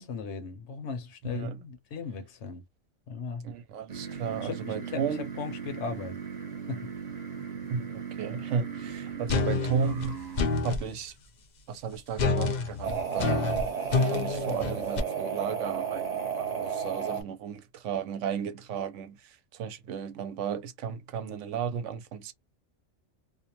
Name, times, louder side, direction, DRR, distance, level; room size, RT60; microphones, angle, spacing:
voice 1, 0.0-2.6 3.1-3.5 4.4-6.2 6.7-6.9, left 5 dB, 70° left, 1.0 m, -37 dB
voice 2, 1.2-1.6 3.4-5.3 7.7-10.2 10.6-11.1 11.7-13.6 14.0-22.3, right 6 dB, 85° right, 0.9 m, -34 dB
sound 1, 3.9-10.7 12.8-17.2, right 7 dB, 40° right, 0.8 m, -35 dB
sound 2, 9.3-10.9 12.2-15.0, left 4 dB, 50° left, 0.5 m, -28 dB
2.5 x 2.1 x 2.8 m
omnidirectional pair, 1.3 m